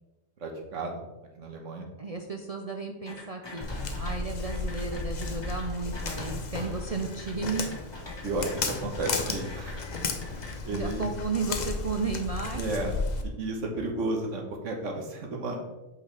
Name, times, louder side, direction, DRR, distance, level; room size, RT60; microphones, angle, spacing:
voice 1, 0.4-1.0 1.3-1.9 8.2-9.8 10.2-11.1 12.5-13.0 13.2-15.6, right 2 dB, 75° right, 2 dB, 1.5 m, -33 dB
voice 2, 2.0-3.7 4.0-7.7 10.7-12.6, right 4 dB, 60° right, 3 dB, 0.4 m, -33 dB
sound 1, 3.1-4.1 4.5-10.5, left 2 dB, 20° left, 1.0 m, -42 dB
Walk footsteps, 3.6-13.2, left 3 dB, 45° left, 0.7 m, -34 dB
8.1 x 4.9 x 3.3 m, 1.1 s
omnidirectional pair, 1.3 m